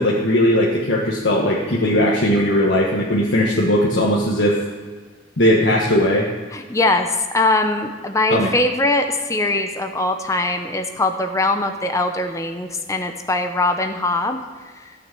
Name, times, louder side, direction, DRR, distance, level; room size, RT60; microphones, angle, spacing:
voice 1, 0.0-4.6 5.4-6.3 8.3-8.5, left 1 dB, 80° left, -3 dB, 1.4 m, -18 dB
voice 2, 6.5-14.4, left 2 dB, 20° left, 6 dB, 0.7 m, -21 dB
15.0 x 6.3 x 7.6 m, 1.5 s
head